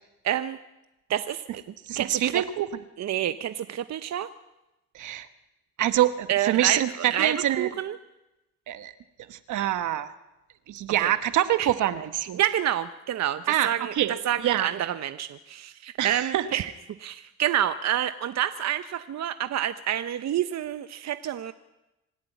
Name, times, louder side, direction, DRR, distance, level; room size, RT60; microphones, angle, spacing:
voice 1, 0.2-0.6 1.1-1.4 2.0-2.4 3.0-4.3 6.3-8.0 11.0-11.1 11.6-11.7 12.3-16.7 17.0-21.5, right 11 dB, 60° right, 11 dB, 0.9 m, -28 dB
voice 2, 1.9-2.7 4.9-5.3 5.8-7.7 8.7-8.9 9.3-10.1 10.7-12.4 13.5-14.1 14.4-14.7 16.0-16.5, right 12 dB, 80° right, 11 dB, 1.3 m, -25 dB
26.0 x 11.5 x 9.3 m, 0.97 s
cardioid pair, 90°, 30 cm